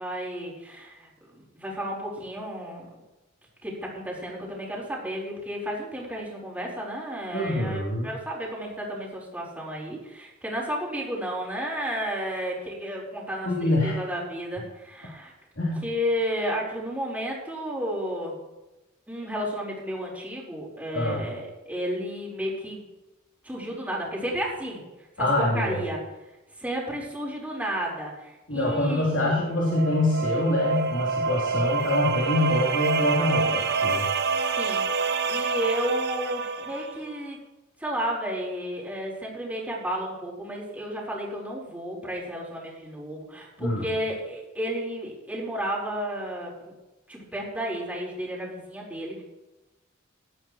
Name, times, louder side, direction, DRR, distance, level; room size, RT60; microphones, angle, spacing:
voice 1, 0.0-3.0 3.6-15.3 15.8-18.4 19.1-22.9 23.4-24.8 25.2-26.0 26.6-29.4 34.6-34.8 35.3-37.4 37.8-46.5 47.1-49.2, equal, 10° right, -4 dB, 4.3 m, -32 dB
voice 2, 7.3-8.1 13.4-14.0 15.6-15.8 20.9-21.2 25.2-25.8 28.5-34.1 43.6-43.8, left 1 dB, 65° left, -5 dB, 3.4 m, -25 dB
sound 1, 29.3-37.0, right 4 dB, 60° right, 0.9 m, -27 dB
18.5 x 12.5 x 3.1 m, 1.0 s
head